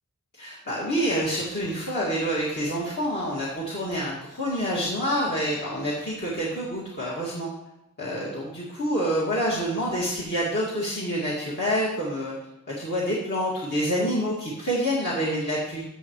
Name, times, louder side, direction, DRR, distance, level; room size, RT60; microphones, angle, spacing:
voice 1, 0.3-7.5 8.0-12.4 12.7-15.9, equal, 45° left, -6 dB, 2.2 m, -27 dB
15.0 x 8.4 x 3.2 m, 0.92 s
head